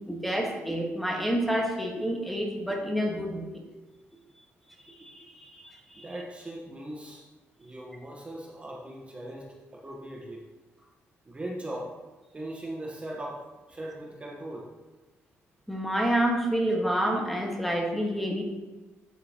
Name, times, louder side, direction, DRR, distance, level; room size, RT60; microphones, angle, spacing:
voice 1, 0.1-3.6 4.9-6.1 15.7-18.4, right 1 dB, ahead, 1 dB, 1.6 m, -29 dB
voice 2, 5.9-7.3 7.6-10.5 10.8-10.9 11.3-11.9 12.3-13.4 13.7-14.7, right 1 dB, 25° right, -1 dB, 1.3 m, -39 dB
8.8 x 8.6 x 3.0 m, 1.2 s
cardioid pair, 90°, 5 cm